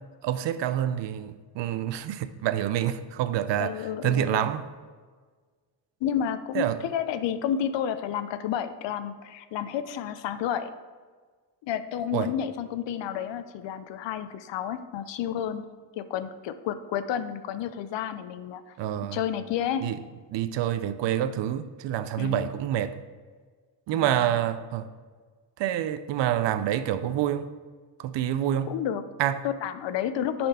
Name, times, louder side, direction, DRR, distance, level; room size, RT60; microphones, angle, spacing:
voice 1, 0.0-4.6 6.5-6.8 12.1-12.3 18.8-19.2 19.8-20.0 20.3-23.0 23.9-24.9 25.6-27.5 28.0-28.7 29.2-29.5, right 11 dB, 80° right, 0.6 m, -27 dB
voice 2, 3.6-4.5 6.0-10.7 11.6-15.6 16.0-18.8 19.1-19.9 22.2-22.5 23.9-24.4 28.7-29.0 29.4-30.5, left 9 dB, 80° left, 0.6 m, -31 dB
9.9 x 4.3 x 4.2 m
cardioid pair, 140°, 43 cm